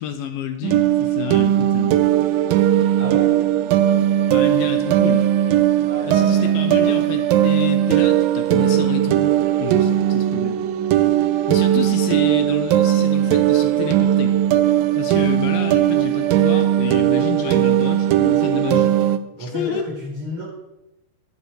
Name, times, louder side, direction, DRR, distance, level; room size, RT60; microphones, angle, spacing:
voice 1, 0.0-2.1 4.3-5.3 6.1-10.6 11.5-14.4 15.0-19.0 19.4-19.8, left 9 dB, 75° left, 7 dB, 2.4 m, -29 dB
sound 1, 0.6-19.2, right 12 dB, 90° right, 2.0 m, -18 dB
voice 2, 2.9-3.4 5.8-7.0 19.3-20.4, equal, 45° right, -5 dB, 6.3 m, -32 dB
12.0 x 10.5 x 4.8 m, 0.90 s
omnidirectional pair, 4.7 m